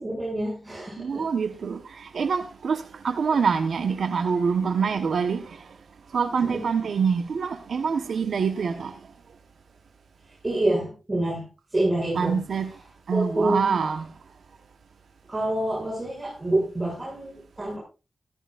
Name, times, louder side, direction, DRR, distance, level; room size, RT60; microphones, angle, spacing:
voice 1, 0.0-1.2 6.4-6.6 10.4-12.4 13.1-13.7 15.3-17.8, right 1 dB, 25° right, 7.4 m, -27 dB
voice 2, 1.0-5.6 6.1-8.9 12.1-12.7 13.1-14.1, right 6 dB, 80° right, 1.3 m, -25 dB
16.0 x 13.0 x 2.6 m
cardioid pair, 65°, 0 cm